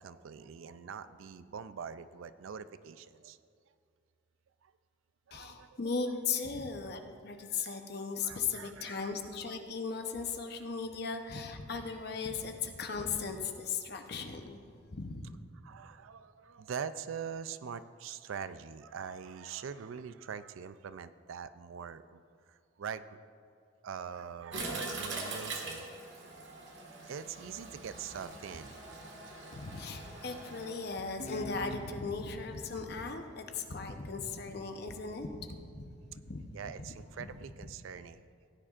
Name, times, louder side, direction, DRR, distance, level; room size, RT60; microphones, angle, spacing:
voice 1, 0.0-3.4 4.6-4.7 5.3-5.8 8.2-9.1 9.5-9.6 12.0-12.2 15.6-23.2 23.8-25.9 27.0-28.7 36.5-38.3, right 7 dB, 80° right, 13 dB, 0.4 m, -43 dB
voice 2, 5.3-14.6 14.9-15.2 29.5-36.4 37.2-37.3 37.6-37.7, left 5 dB, 50° left, 5 dB, 0.8 m, -37 dB
Toilet flush, 24.5-30.7, right 3 dB, 65° right, 1.6 m, -42 dB
Guitar, 31.2-34.4, left 1 dB, 35° left, 0.4 m, -48 dB
16.0 x 10.0 x 2.5 m, 2.4 s
head